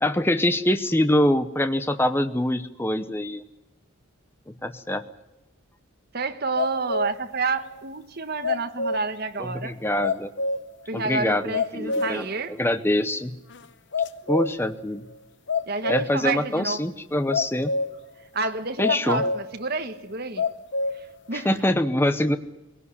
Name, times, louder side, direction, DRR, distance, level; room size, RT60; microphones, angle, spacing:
voice 1, 0.0-3.4 4.6-5.0 9.4-10.3 10.9-13.4 14.3-15.0 15.9-17.7 18.8-19.2 21.3-22.4, left 1 dB, 10° left, 10 dB, 0.8 m, -24 dB
voice 2, 6.1-9.7 10.9-12.5 15.7-16.8 18.3-20.4 21.3-21.5, right 3 dB, 45° right, 7 dB, 1.6 m, -29 dB
sound 1, 6.6-7.3 7.7-7.8 8.4-9.2 9.7-9.8 10.0-10.8 11.2-11.3 11.5-12.4 12.7-12.8 13.5-13.6 13.9-14.7 15.5-16.3 17.3-18.0 18.8-19.5 19.9-20.0 20.4-21.1 21.5-21.6, left 3 dB, 55° left, 0.9 m, -27 dB
21.5 x 17.5 x 9.8 m, 0.99 s
head